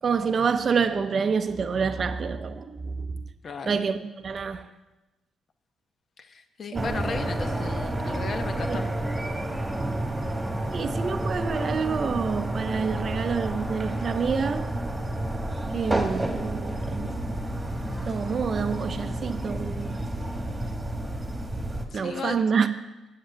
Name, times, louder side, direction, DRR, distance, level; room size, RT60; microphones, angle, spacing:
voice 1, 0.0-3.2 3.7-4.7 6.7-7.1 8.7-8.8 9.7-10.0 10.7-14.7 15.7-17.4 18.1-20.0 21.9-22.7, right 5 dB, 45° right, 0.6 m, -28 dB
voice 2, 6.2-8.8 21.9-22.4, left 5 dB, 50° left, 0.9 m, -35 dB
sound 1, 6.7-21.8, right 1 dB, 15° right, 1.5 m, -30 dB
7.8 x 7.8 x 7.9 m
cardioid pair, 90°, 0 cm